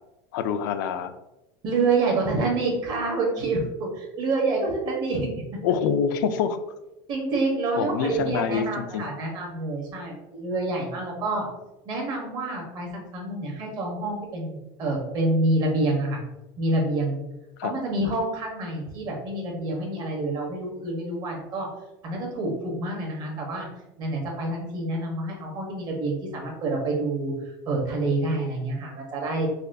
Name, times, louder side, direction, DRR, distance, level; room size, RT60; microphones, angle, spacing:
voice 1, 0.3-1.1 5.6-6.6 7.8-9.1 17.6-17.7, left 7 dB, 80° left, 9 dB, 0.4 m, -26 dB
voice 2, 1.6-5.3 7.1-11.5 11.8-16.2 16.6-17.2 17.6-21.7 22.0-23.7 24.0-27.3 27.6-29.5, right 2 dB, 45° right, 0 dB, 1.1 m, -27 dB
4.0 x 2.3 x 2.6 m, 0.95 s
supercardioid pair, 135°, 10 cm